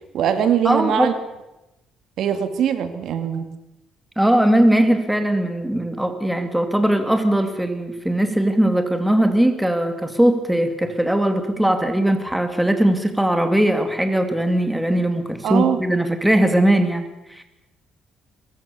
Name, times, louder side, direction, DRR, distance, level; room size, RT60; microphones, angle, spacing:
voice 1, 0.1-1.1 2.2-3.4 15.4-15.8, right 9 dB, 65° right, 9 dB, 2.2 m, -21 dB
voice 2, 0.6-1.1 4.2-17.0 17.3-17.4, right 1 dB, 5° right, 7 dB, 2.3 m, -19 dB
23.0 x 22.0 x 6.9 m, 0.97 s
cardioid pair, 135°, 0 cm